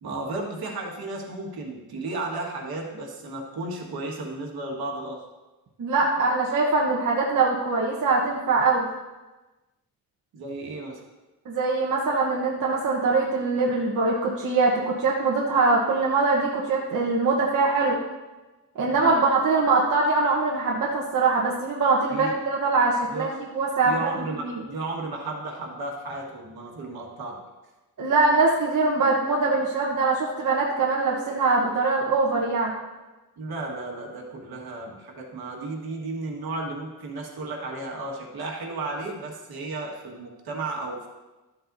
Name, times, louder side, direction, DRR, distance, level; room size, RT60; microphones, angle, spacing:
voice 1, 0.0-5.2 10.3-11.0 18.9-19.2 22.1-22.4 23.1-23.3 23.8-27.4 33.4-41.1, right 2 dB, 75° right, -1 dB, 1.8 m, -34 dB
voice 2, 5.8-8.9 11.4-18.0 18.7-24.2 28.0-32.7, right 3 dB, 55° right, -4 dB, 1.2 m, -23 dB
13.0 x 7.7 x 2.7 m, 1.1 s
wide cardioid pair, 165°, 37 cm